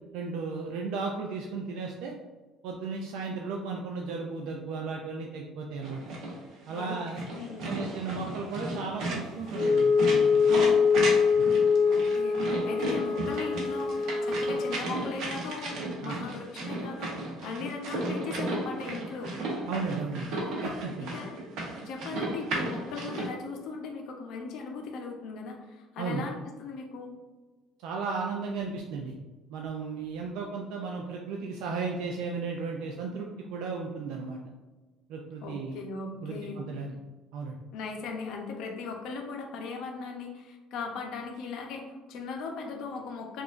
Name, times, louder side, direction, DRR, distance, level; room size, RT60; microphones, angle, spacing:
voice 1, 0.1-2.1 2.6-6.0 6.7-7.3 7.6-10.4 11.4-11.5 16.0-16.2 19.6-21.1 26.0-26.2 27.8-29.2 29.5-34.4 35.1-35.8 36.2-36.9 37.3-37.6, right 4 dB, 75° right, 0 dB, 0.4 m, -35 dB
sound 1, 5.8-23.3, right 2 dB, 60° right, 0.9 m, -35 dB
voice 2, 7.3-7.8 11.9-19.4 20.5-20.7 21.0-21.3 21.8-27.1 35.4-36.6 37.7-43.4, left 4 dB, 60° left, 2 dB, 0.7 m, -38 dB
Wind instrument woodwind instrument, 9.5-14.8, left 5 dB, 20° left, 0.8 m, -24 dB
4.8 x 2.5 x 2.5 m, 1.3 s
cardioid pair, 160°, 0 cm